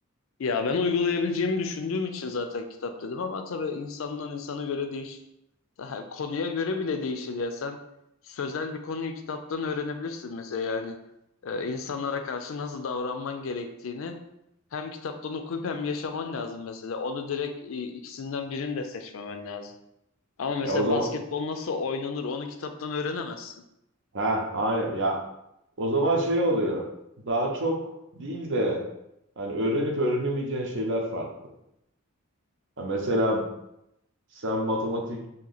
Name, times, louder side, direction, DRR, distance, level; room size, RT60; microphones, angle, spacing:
voice 1, 0.4-5.2 5.8-7.8 8.2-11.0 11.4-14.1 14.7-19.7 20.4-23.6, left 4 dB, 70° left, 7 dB, 0.4 m, -31 dB
voice 2, 20.6-21.1 24.1-25.2 25.8-26.8 27.2-27.8 28.1-28.8 29.4-31.3 32.8-33.4 34.4-35.2, right 1 dB, 60° right, 1 dB, 0.7 m, -26 dB
2.9 x 2.8 x 3.9 m, 0.82 s
head